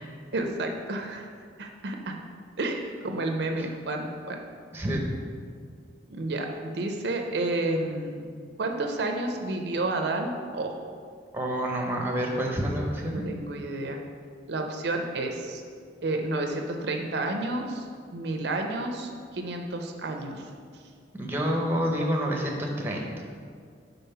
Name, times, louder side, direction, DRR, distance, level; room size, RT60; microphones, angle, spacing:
voice 1, 0.3-1.3 1.6-2.2 2.6-4.4 6.1-8.3 8.6-10.7 13.1-14.0 14.5-15.6 16.0-17.8 18.1-20.4, right 2 dB, 60° right, 3 dB, 0.5 m, -30 dB
voice 2, 11.3-13.2 21.1-23.0, equal, 10° right, 0 dB, 0.7 m, -28 dB
5.5 x 3.9 x 5.6 m, 2.1 s
head